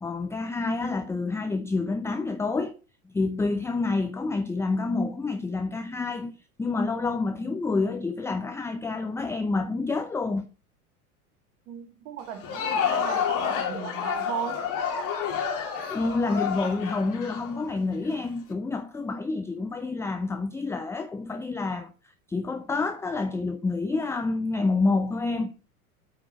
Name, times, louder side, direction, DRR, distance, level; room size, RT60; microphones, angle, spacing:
voice 1, 0.0-2.7 3.1-10.5 15.9-21.9 22.3-25.5, left 3 dB, 5° left, 0.5 m, -28 dB
voice 2, 11.7-14.7, right 8 dB, 55° right, 2.2 m, -36 dB
Crowd, 12.3-18.2, left 7 dB, 45° left, 2.7 m, -29 dB
8.5 x 4.9 x 5.3 m
hypercardioid pair, 85°, 44 cm